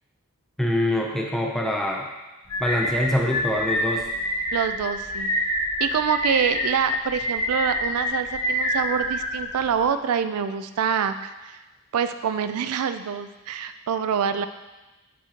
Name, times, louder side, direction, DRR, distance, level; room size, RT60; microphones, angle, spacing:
voice 1, 0.6-2.1 2.6-4.1, left 1 dB, ahead, -1 dB, 0.4 m, -24 dB
sound 1, 2.5-9.9, left 1 dB, 65° left, 2.2 m, -27 dB
voice 2, 4.5-5.3 5.8-11.6 11.9-14.5, right 7 dB, 80° right, 10 dB, 0.4 m, -26 dB
9.2 x 4.3 x 2.9 m, 1.1 s
head